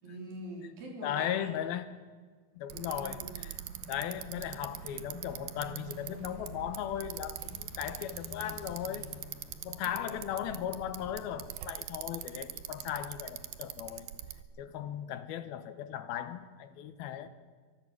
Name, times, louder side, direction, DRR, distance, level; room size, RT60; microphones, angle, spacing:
voice 1, 0.0-1.5 2.7-3.4 9.8-10.4, right 1 dB, 70° right, 0 dB, 5.6 m, -44 dB
voice 2, 1.0-1.9 2.6-3.6 3.9-9.1 9.6-14.1 14.6-17.3, left 10 dB, 85° left, 11 dB, 3.0 m, -37 dB
Bicycle, 2.7-14.4, right 12 dB, 85° right, 2.8 m, -43 dB
sound 1, 4.3-13.7, right 2 dB, 30° right, 2.6 m, -61 dB
sound 2, 6.5-11.5, left 8 dB, 70° left, 2.6 m, -53 dB
24.0 x 15.5 x 7.6 m, 1.5 s
omnidirectional pair, 4.2 m